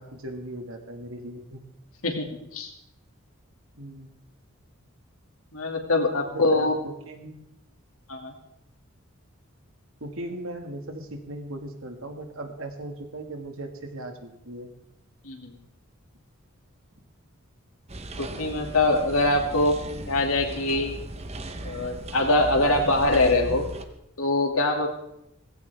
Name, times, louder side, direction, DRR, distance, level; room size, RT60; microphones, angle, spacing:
voice 1, 0.0-1.6 3.7-4.1 6.3-6.7 7.1-7.4 10.0-14.7, right 1 dB, 70° right, 4 dB, 2.0 m, -38 dB
voice 2, 5.5-6.8 8.1-8.3 15.2-15.6 18.2-20.9 21.6-23.7 24.2-24.9, left 2 dB, 75° left, 2 dB, 2.4 m, -23 dB
sound 1, 17.9-23.8, right 1 dB, 30° right, 0.9 m, -37 dB
18.0 x 15.5 x 3.6 m, 0.81 s
head